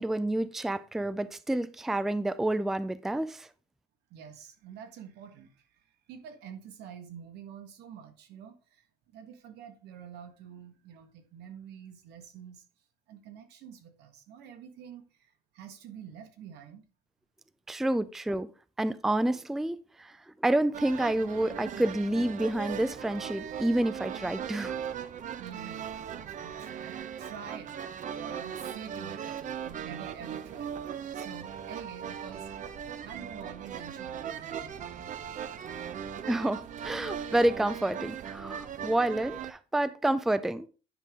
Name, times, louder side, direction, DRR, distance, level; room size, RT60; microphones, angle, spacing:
voice 1, 0.0-3.5 17.7-18.5 18.8-24.8 36.3-40.7, right 1 dB, ahead, 0.4 m, -29 dB
voice 2, 4.1-8.9 9.1-12.6 13.1-16.8 25.4-27.7 28.2-32.7 33.0-35.0, right 8 dB, 80° right, 1.6 m, -47 dB
sound 1, 20.7-39.5, right 8 dB, 50° right, 0.8 m, -39 dB
9.9 x 5.3 x 3.7 m
cardioid pair, 110°, 17 cm